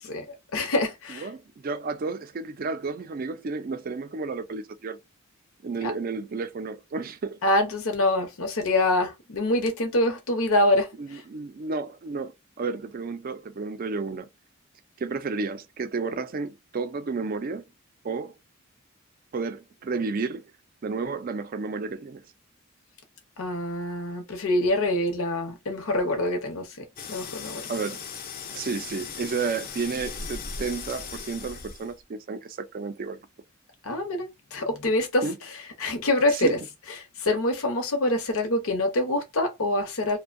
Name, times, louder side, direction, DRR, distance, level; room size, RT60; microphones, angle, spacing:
voice 1, 0.0-1.3 5.8-5.9 7.4-11.2 23.4-27.6 33.8-35.3 35.8-36.6 37.2-40.2, left 1 dB, 80° left, 0.8 m, -25 dB
voice 2, 1.2-5.0 5.6-7.4 11.0-14.3 15.0-17.6 18.0-18.3 19.3-20.5 20.8-22.2 27.7-28.0 28.5-33.2 35.2-35.4 36.3-36.6, right 4 dB, 40° right, 0.3 m, -32 dB
sound 1, 27.0-32.0, left 5 dB, 40° left, 0.4 m, -38 dB
2.6 x 2.1 x 2.5 m
head